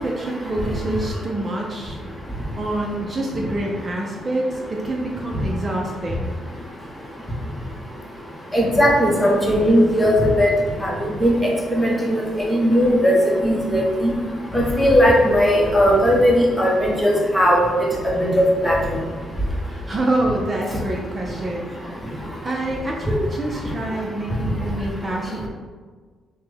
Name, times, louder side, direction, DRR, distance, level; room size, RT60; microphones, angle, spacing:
voice 1, 0.0-2.0 2.6-6.3 19.6-22.1 22.4-25.5, right 1 dB, 30° right, -1 dB, 0.6 m, -26 dB
voice 2, 8.5-10.5 10.8-11.3 11.8-13.2 13.4-13.8 14.5-17.6 18.2-18.8, equal, 10° left, -2 dB, 0.9 m, -17 dB
5.6 x 2.2 x 3.4 m, 1.5 s
cardioid pair, 90°, 0 cm